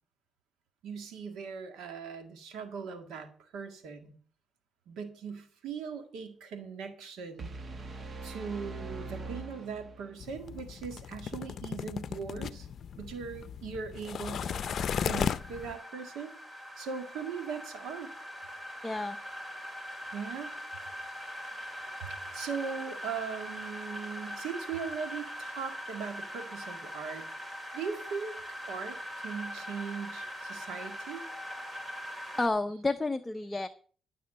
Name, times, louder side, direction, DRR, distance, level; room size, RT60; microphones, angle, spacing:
voice 1, 0.8-4.2 4.9-7.5 8.2-12.7 13.0-14.6 15.0-16.3 16.8-18.1 20.1-20.5 22.0-22.1 22.3-27.3 27.7-28.4 28.7-29.0 29.2-31.2, right 6 dB, 85° right, 7 dB, 1.9 m, -39 dB
sound 1, 7.4-10.4, right 3 dB, 40° right, 1.1 m, -42 dB
sound 2, 10.2-15.8, left 8 dB, 60° left, 0.6 m, -36 dB
sound 3, 14.4-32.5, equal, 25° right, 2.5 m, -42 dB
voice 2, 18.8-19.2 32.4-33.7, left 2 dB, 15° left, 7 dB, 0.6 m, -30 dB
12.5 x 6.9 x 6.5 m, 0.44 s
cardioid pair, 90°, 0 cm